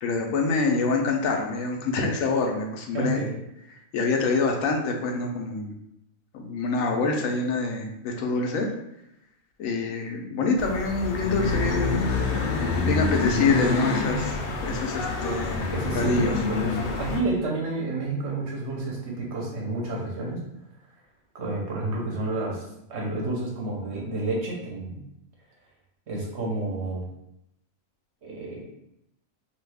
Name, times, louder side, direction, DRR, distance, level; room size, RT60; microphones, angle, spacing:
voice 1, 0.0-3.2 3.9-5.8 6.3-8.7 9.6-15.7 15.9-16.4, left 4 dB, 85° left, 2 dB, 1.0 m, -26 dB
voice 2, 2.9-3.3 15.7-20.4 21.3-22.6 22.9-25.0 26.1-27.0 28.2-28.6, right 2 dB, 60° right, -3 dB, 1.0 m, -30 dB
sound 1, 10.6-17.2, left 3 dB, 65° left, 0.6 m, -27 dB
2.7 x 2.3 x 3.3 m, 0.82 s
omnidirectional pair, 1.4 m